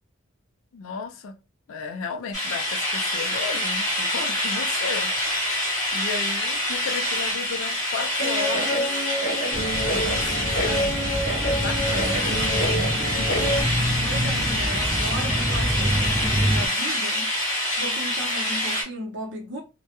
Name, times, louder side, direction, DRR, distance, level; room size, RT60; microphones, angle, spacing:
voice 1, 0.7-1.4 1.7-9.0 9.9-11.1 11.6-12.8 13.2-13.3, left 5 dB, 75° left, 0.4 m, -34 dB
sound 1, 2.3-18.8, left 1 dB, 20° left, 1.0 m, -26 dB
Guitar, 8.2-13.6, equal, 45° left, 0.7 m, -28 dB
sound 2, 9.5-16.7, equal, 10° right, 0.6 m, -27 dB
voice 2, 14.0-17.3 17.8-19.6, right 1 dB, 55° right, 0.7 m, -35 dB
2.2 x 2.1 x 2.8 m
head